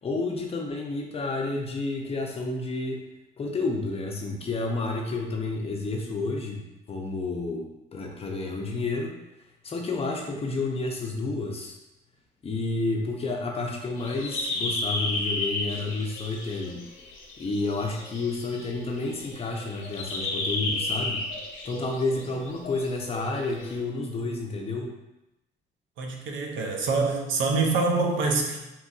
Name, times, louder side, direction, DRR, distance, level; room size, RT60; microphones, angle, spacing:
voice 1, 0.0-3.0 3.4-7.7 7.9-9.1 9.6-11.8 12.4-16.8 17.4-21.3 21.6-24.9, left 3 dB, 30° left, 1 dB, 0.5 m, -30 dB
sound 1, 14.0-23.8, left 2 dB, 85° left, 0.6 m, -33 dB
voice 2, 26.0-28.6, right 3 dB, 75° right, 2 dB, 0.5 m, -25 dB
3.0 x 2.5 x 2.4 m, 0.96 s
cardioid pair, 90°, 20 cm